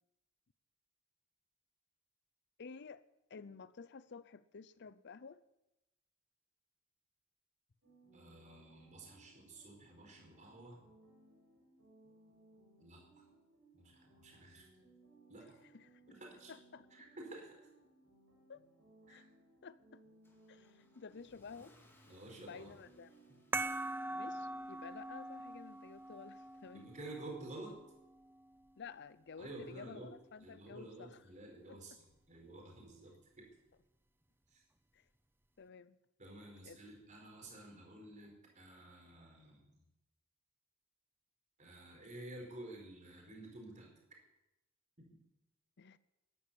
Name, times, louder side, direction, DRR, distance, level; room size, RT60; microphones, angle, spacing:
voice 1, 2.6-3.0 3.3-5.4 15.7-16.0 16.5-16.9 18.5-18.6 19.1-19.3 19.6-20.0 20.5-21.8 22.0-23.1 24.1-26.9 28.8-31.2 31.7-31.8 34.9-35.0 35.6-36.0 36.7-36.8 45.8-46.0, left 5 dB, 55° left, 0.6 m, -52 dB
sound 1, 7.8-24.6, right 2 dB, 85° right, 5.8 m, -66 dB
voice 2, 8.1-10.9 12.8-13.2 13.7-14.7 15.3-15.6 16.1-16.5 16.9-17.5 19.1-19.2 22.1-22.7 23.3-23.4 26.7-27.8 29.4-30.1 30.4-33.5 34.5-34.6 36.2-39.8 41.6-43.9 45.0-45.2, right 2 dB, 35° right, 4.6 m, -51 dB
Car / Engine starting / Accelerating revving vroom, 20.2-27.4, left 1 dB, 10° left, 2.4 m, -70 dB
sound 2, 23.5-28.6, right 2 dB, 10° right, 0.6 m, -43 dB
12.5 x 11.5 x 8.4 m
head